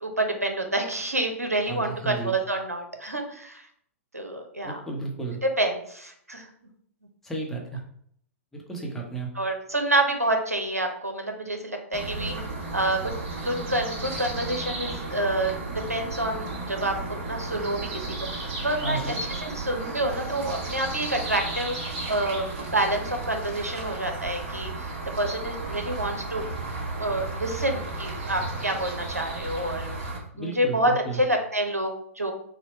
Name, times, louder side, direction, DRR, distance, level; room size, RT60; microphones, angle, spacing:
voice 1, 0.0-3.6 4.1-4.8 5.6-6.5 9.4-12.4 12.7-13.1 13.4-18.0 18.3-19.0 19.4-21.8 22.1-26.4 27.0-30.0 30.4-32.3, right 1 dB, 85° right, 4 dB, 0.8 m, -28 dB
voice 2, 1.7-2.4 4.6-5.4 7.2-7.8 8.5-9.3 18.8-19.2 30.3-30.8 31.0-31.2, right 3 dB, 5° left, -2 dB, 0.8 m, -33 dB
sound 1, 11.9-30.2, right 2 dB, 40° right, 1.3 m, -34 dB
4.2 x 2.1 x 4.1 m, 0.67 s
figure-of-eight pair, 110°, 8 cm